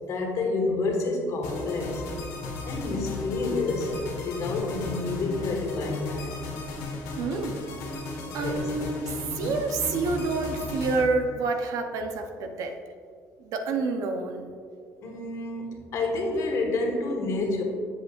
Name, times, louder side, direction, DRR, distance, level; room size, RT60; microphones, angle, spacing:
voice 1, 0.1-2.1 2.6-6.4 8.3-8.7 15.0-17.6, left 3 dB, 60° left, 1 dB, 1.4 m, -29 dB
sound 1, 1.4-11.0, left 2 dB, 85° left, 1.5 m, -35 dB
voice 2, 7.2-7.6 8.3-12.7 13.4-14.5, right 3 dB, 70° right, 5 dB, 0.7 m, -28 dB
7.8 x 7.4 x 2.5 m, 2.1 s
cardioid pair, 105°, 6 cm